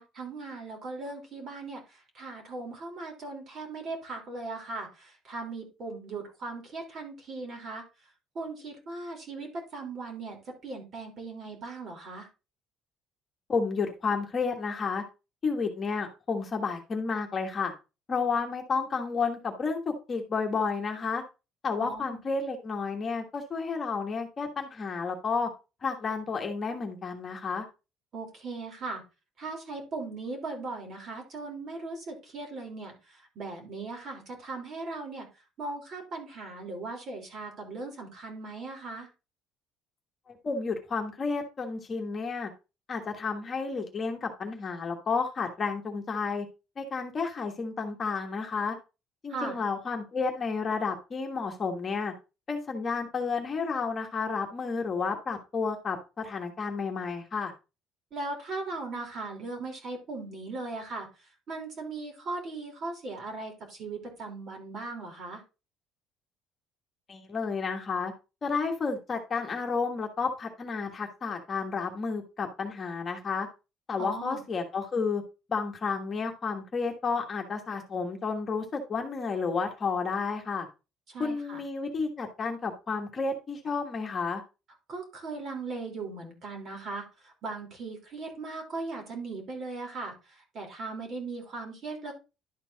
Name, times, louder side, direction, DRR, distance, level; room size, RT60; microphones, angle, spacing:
voice 1, 0.0-7.8 8.3-12.3 21.8-22.2 28.1-29.0 29.4-35.3 35.6-39.1 49.3-49.6 58.1-61.1 61.5-65.4 74.0-74.4 81.1-81.6 84.9-92.1, right 3 dB, 45° right, 1 dB, 3.4 m, -38 dB
voice 2, 13.5-15.0 15.4-17.7 18.1-21.2 21.6-25.5 25.8-27.6 40.3-42.5 42.9-46.5 46.8-48.7 49.2-52.1 52.5-57.5 67.1-68.1 68.4-73.5 73.9-75.2 75.5-80.7 81.2-84.4, left 4 dB, 30° left, 3 dB, 1.4 m, -31 dB
11.5 x 4.4 x 4.0 m, 0.29 s
cardioid pair, 150°, 0 cm